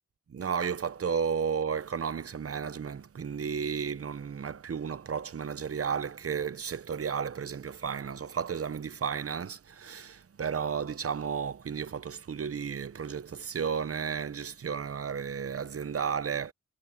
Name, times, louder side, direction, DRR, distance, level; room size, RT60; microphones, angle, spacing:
voice 1, 0.3-16.5, right 6 dB, 50° right, 0.8 m, -33 dB
wide cardioid pair, 140°, 29 cm